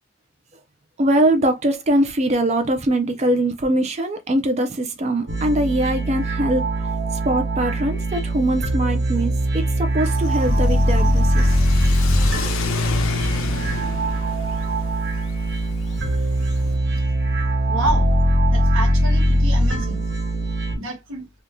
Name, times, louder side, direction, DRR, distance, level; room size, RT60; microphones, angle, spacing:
voice 1, 1.0-6.6 7.3-11.5, right 1 dB, 30° right, 0.4 m, -22 dB
sound 1, 5.3-20.8, right 1 dB, 50° right, 0.7 m, -21 dB
Car / Accelerating revving vroom, 10.0-16.8, left 4 dB, 75° left, 0.5 m, -29 dB
voice 2, 17.7-18.1 18.5-20.0 20.8-21.3, right 2 dB, 70° right, 1.2 m, -28 dB
2.7 x 2.2 x 3.5 m
head